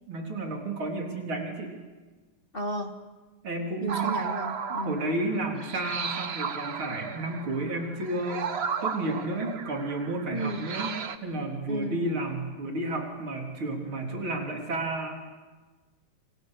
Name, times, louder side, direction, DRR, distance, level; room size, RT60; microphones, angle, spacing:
voice 1, 0.1-1.8 3.4-4.2 4.8-8.5 8.8-10.9 11.2-15.3, right 2 dB, 85° right, 2 dB, 4.5 m, -32 dB
voice 2, 2.5-3.0 3.8-5.0 10.3-10.7 11.7-12.1, right 1 dB, 30° left, 5 dB, 1.5 m, -33 dB
sound 1, 3.9-11.2, right 6 dB, 45° right, 0.9 m, -34 dB
27.5 x 25.0 x 6.6 m, 1.3 s
omnidirectional pair, 2.2 m